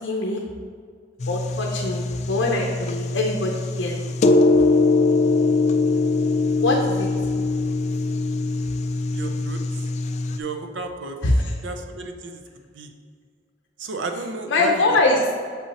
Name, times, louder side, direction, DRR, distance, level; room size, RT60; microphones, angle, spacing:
voice 1, 0.0-0.4 1.3-4.2 6.6-7.1 11.2-11.5 14.5-15.2, left 2 dB, 80° left, -1 dB, 0.7 m, -23 dB
sound 1, 1.2-10.4, left 3 dB, 40° left, 0.3 m, -22 dB
voice 2, 9.1-9.8 10.4-11.2 11.6-12.4 12.7-12.9 13.8-14.8, right 3 dB, 80° right, 5 dB, 0.6 m, -32 dB
6.9 x 5.6 x 2.9 m, 2.1 s
head